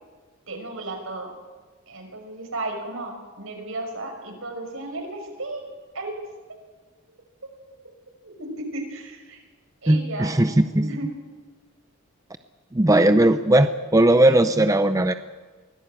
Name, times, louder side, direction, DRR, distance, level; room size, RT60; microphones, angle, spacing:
voice 1, 0.5-1.3 1.9-6.2 7.4-7.5 8.2-9.4 9.8-10.4 10.8-11.1, right 2 dB, 70° right, 3 dB, 5.9 m, -34 dB
voice 2, 9.9-10.9 12.7-15.1, right 1 dB, 15° right, 9 dB, 0.6 m, -18 dB
23.5 x 17.5 x 8.8 m, 1.4 s
head